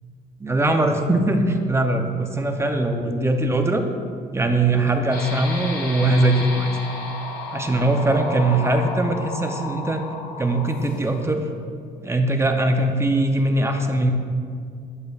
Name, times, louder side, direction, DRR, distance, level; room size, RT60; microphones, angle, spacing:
voice 1, 0.4-3.8 4.3-6.7 7.5-10.0 10.4-11.4 12.0-14.1, right 2 dB, 15° right, 5 dB, 0.5 m, -21 dB
sound 1, 5.1-11.2, left 3 dB, 55° left, 1.8 m, -33 dB
12.0 x 5.1 x 2.4 m, 2.2 s
cardioid pair, 110°, 17 cm